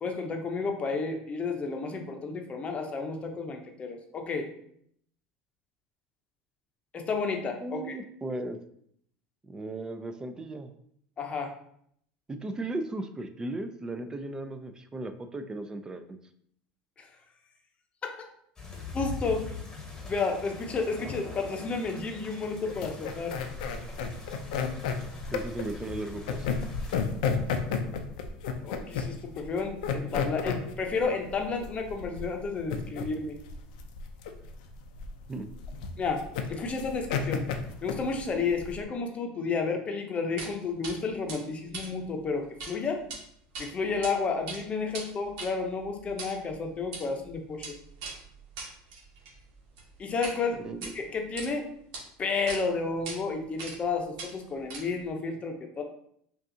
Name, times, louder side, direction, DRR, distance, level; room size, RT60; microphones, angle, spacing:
voice 1, 0.0-4.5 6.9-8.0 11.2-11.5 17.0-17.1 18.0-18.3 18.9-19.5 20.1-23.4 28.6-33.4 36.0-36.2 36.5-37.5 37.8-43.0 43.6-47.8 50.0-50.7 50.9-51.7 52.2-55.8, left 4 dB, 30° left, 4 dB, 0.7 m, -31 dB
voice 2, 7.6-8.6 9.5-10.7 12.3-16.2 25.3-26.5 35.3-35.5 50.6-50.9, right 2 dB, 15° right, 9 dB, 0.4 m, -36 dB
sound 1, 18.6-27.0, left 4 dB, 15° left, 1.0 m, -42 dB
sound 2, 22.7-38.8, left 6 dB, 80° left, 0.5 m, -33 dB
sound 3, 40.4-40.5 40.8-41.0 41.3-42.7 43.0-43.2 43.5-44.1 44.4-50.4 50.7-51.5 51.9-52.0 52.5-52.6 53.1-53.2 53.6-53.9 54.2-55.1, right 4 dB, 70° right, 1.2 m, -41 dB
5.2 x 2.4 x 2.7 m, 0.69 s
supercardioid pair, 105°, 4 cm